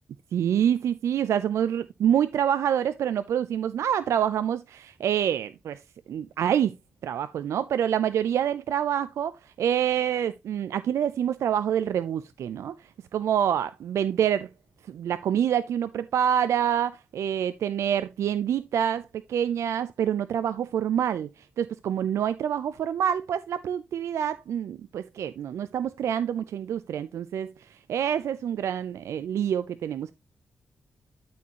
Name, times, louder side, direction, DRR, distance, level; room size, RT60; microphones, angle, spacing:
voice 1, 0.3-5.8 6.1-6.7 7.0-9.3 9.6-12.7 13.1-14.5 14.9-21.3 21.6-27.5 27.9-30.1, right 9 dB, 80° right, 0.4 m, -26 dB
12.0 x 4.3 x 2.9 m
supercardioid pair, 45°, 5 cm